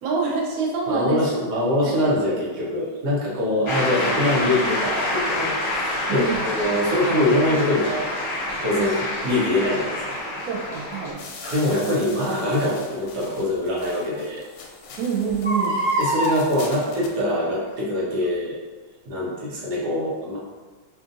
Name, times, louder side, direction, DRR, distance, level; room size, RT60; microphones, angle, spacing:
voice 1, 0.0-1.2 1.8-2.1 3.8-4.4 6.1-6.5 9.7-10.0 10.5-11.2 15.0-15.8, right 5 dB, 85° right, -2 dB, 0.7 m, -27 dB
voice 2, 0.9-8.1 8.6-10.2 11.5-14.4 16.0-18.5 19.1-20.4, left 1 dB, 60° right, -5 dB, 1.3 m, -23 dB
Shout / Cheering / Applause, 3.7-11.1, left 1 dB, 50° left, 1.3 m, -27 dB
Crying sobbing, 8.8-9.0 11.4-11.6 13.2-13.3 13.8-13.9 14.2-14.3 15.3-16.4 17.3-17.7 18.2-18.3, right 1 dB, 20° right, 0.8 m, -25 dB
sound 1, 11.2-17.2, left 4 dB, 75° left, 1.3 m, -42 dB
5.2 x 2.5 x 2.5 m, 1.3 s
omnidirectional pair, 2.3 m